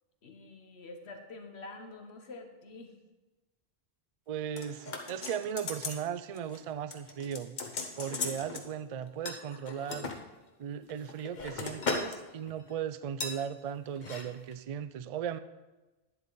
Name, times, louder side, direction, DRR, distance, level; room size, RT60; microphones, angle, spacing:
voice 1, 0.2-2.9, left 3 dB, 90° left, 4 dB, 1.5 m, -47 dB
voice 2, 4.3-7.6 8.0-10.1 10.6-15.4, right 8 dB, 50° right, 14 dB, 0.4 m, -37 dB
sound 1, 4.6-6.0 6.3-6.6 6.9-8.7 9.3-10.2 10.8-12.2 12.5-12.7 13.2-13.4 14.0-14.2 14.5-14.6, left 4 dB, 50° left, 1.1 m, -37 dB
11.0 x 9.5 x 3.9 m, 1.1 s
omnidirectional pair, 1.0 m